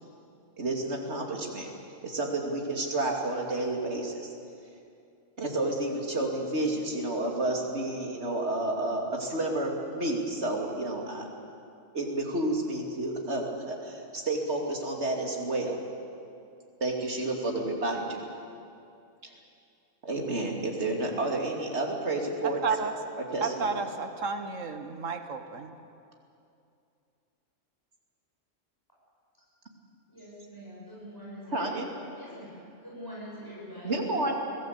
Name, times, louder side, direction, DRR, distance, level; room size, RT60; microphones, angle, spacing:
voice 1, 0.6-1.7 2.0-4.3 5.4-11.3 11.9-15.8 16.8-18.2 20.0-22.6 23.2-23.7 31.5-31.9 33.8-34.4, right 2 dB, 60° right, 1 dB, 3.1 m, -30 dB
voice 2, 22.4-22.9 23.4-25.7, right 5 dB, 85° right, 8 dB, 1.7 m, -32 dB
voice 3, 30.1-31.8 32.1-34.4, equal, 15° left, -7 dB, 6.9 m, -44 dB
24.0 x 17.5 x 8.3 m, 2.5 s
omnidirectional pair, 1.3 m